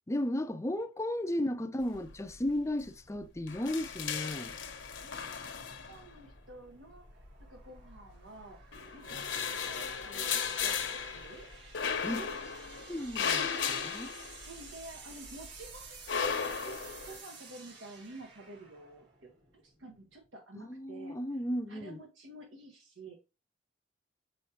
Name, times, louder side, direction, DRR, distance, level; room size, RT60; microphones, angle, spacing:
voice 1, 0.1-4.6 12.0-12.2 12.9-14.1 20.6-22.0, left 1 dB, 15° left, 0.5 m, -34 dB
sound 1, 1.3-20.3, right 4 dB, 60° right, 2.9 m, -54 dB
sound 2, 1.9-2.4 2.7-2.9 3.2-6.3 7.2-8.2 8.6-14.9 15.3-17.2, left 6 dB, 65° left, 1.0 m, -36 dB
voice 2, 5.0-5.4 5.8-7.1 7.5-8.6 8.9-11.5 12.2-12.5 13.5-13.7 14.5-16.1 16.6-21.2 21.7-23.2, right 2 dB, 85° right, 1.5 m, -50 dB
6.2 x 5.6 x 3.1 m
head